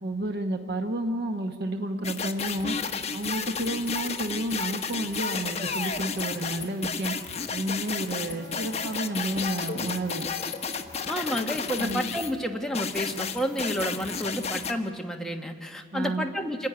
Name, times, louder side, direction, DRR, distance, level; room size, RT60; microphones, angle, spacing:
voice 1, 0.0-2.7 3.1-7.2 7.5-10.3 11.8-12.0 15.9-16.2, right 1 dB, 65° right, 4 dB, 1.1 m, -31 dB
sound 1, 2.0-12.3 12.7-14.7, left 5 dB, 35° left, 1.1 m, -32 dB
Wind instrument woodwind instrument, 8.1-11.7, left 9 dB, 70° left, 1.4 m, -48 dB
voice 2, 11.1-16.7, equal, 5° left, 2 dB, 1.4 m, -30 dB
26.0 x 11.0 x 9.6 m, 2.1 s
head